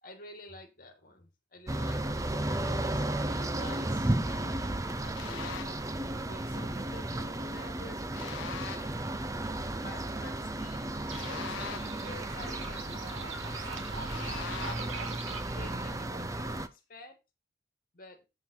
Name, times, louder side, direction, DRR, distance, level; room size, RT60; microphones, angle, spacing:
voice 1, 0.0-3.0 3.3-4.6 5.0-5.9 6.2-8.7 9.7-10.9 11.2-14.3 14.7-17.2 17.9-18.3, left 2 dB, 45° left, 2.0 m, -50 dB
sound 1, 1.7-16.7, right 1 dB, 15° right, 0.5 m, -34 dB
sound 2, 5.2-5.8 8.1-9.0 11.1-12.1 14.1-15.0, left 8 dB, 65° left, 0.4 m, -42 dB
sound 3, 11.1-16.0, right 4 dB, 75° right, 1.8 m, -42 dB
7.6 x 7.1 x 4.3 m
head